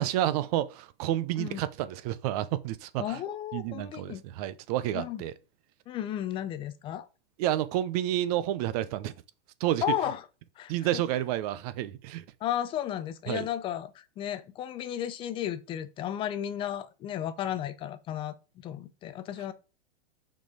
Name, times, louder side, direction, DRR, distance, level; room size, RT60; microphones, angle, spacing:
voice 1, 0.0-3.2 3.5-5.3 7.4-9.1 9.6-9.8 10.7-12.2 13.3-13.5, right 13 dB, 40° right, 0.7 m, -30 dB
voice 2, 3.0-4.2 4.9-5.2 5.9-7.1 9.8-10.2 10.6-11.0 12.4-18.3 18.6-19.5, left 11 dB, 15° left, 0.5 m, -34 dB
6.0 x 4.5 x 5.0 m
hypercardioid pair, 145°, 30 cm